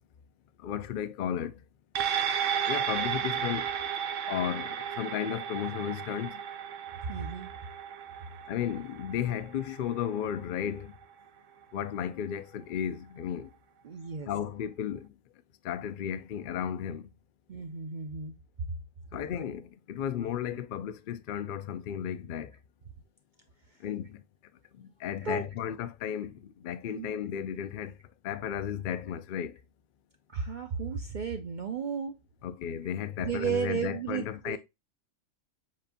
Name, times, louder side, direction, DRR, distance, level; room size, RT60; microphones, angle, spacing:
voice 1, 0.6-1.6 2.6-3.7 4.2-6.4 8.5-10.9 11.7-13.5 14.3-15.1 15.6-17.1 19.1-22.5 23.8-24.2 24.7-28.0 28.2-29.6 32.4-34.6, left 9 dB, 70° left, 0.5 m, -34 dB
sound 1, 2.0-10.6 11.0-11.1, right 8 dB, 75° right, 1.0 m, -34 dB
voice 2, 7.1-7.5 13.8-14.3 17.5-18.3 25.2-25.4 26.9-27.1 30.3-32.2 33.2-34.6, right 6 dB, 60° right, 0.5 m, -33 dB
7.3 x 2.7 x 2.5 m
omnidirectional pair, 1.4 m